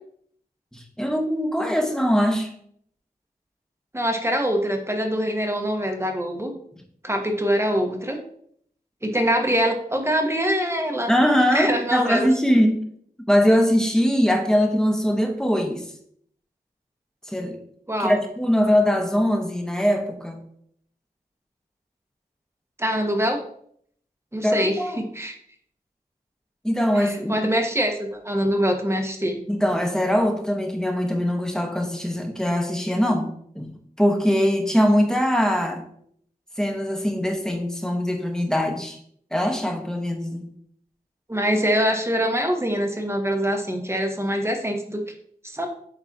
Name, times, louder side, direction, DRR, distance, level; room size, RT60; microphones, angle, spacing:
voice 1, 0.7-2.5 11.1-12.8 13.3-15.8 17.3-17.6 18.0-20.4 24.4-25.0 26.6-27.4 29.5-33.3 33.5-35.8 36.6-39.0 39.3-40.4, equal, 5° left, 3 dB, 1.2 m, -22 dB
voice 2, 3.9-6.5 7.0-8.2 9.0-11.1 11.5-12.3 17.9-18.2 22.8-23.4 24.3-25.4 27.0-29.4 41.3-45.0 45.5-45.7, equal, 15° right, 3 dB, 1.3 m, -24 dB
11.0 x 4.0 x 2.9 m, 0.65 s
wide cardioid pair, 65°, 16 cm